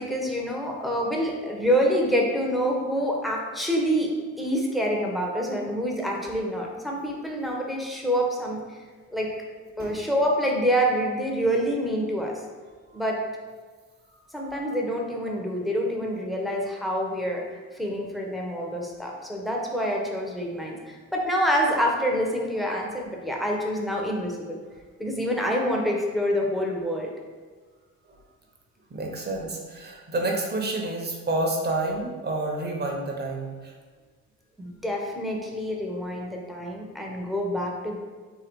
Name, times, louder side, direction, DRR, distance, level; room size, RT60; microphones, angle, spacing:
voice 1, 0.0-4.1 4.4-8.8 9.1-9.3 9.8-12.4 12.9-13.2 14.3-17.4 17.7-24.6 25.0-27.1 34.6-38.0, equal, ahead, -1 dB, 0.8 m, -27 dB
voice 2, 28.9-33.5, right 2 dB, 35° right, 0 dB, 0.9 m, -29 dB
3.9 x 2.8 x 4.5 m, 1.4 s
cardioid pair, 90°, 30 cm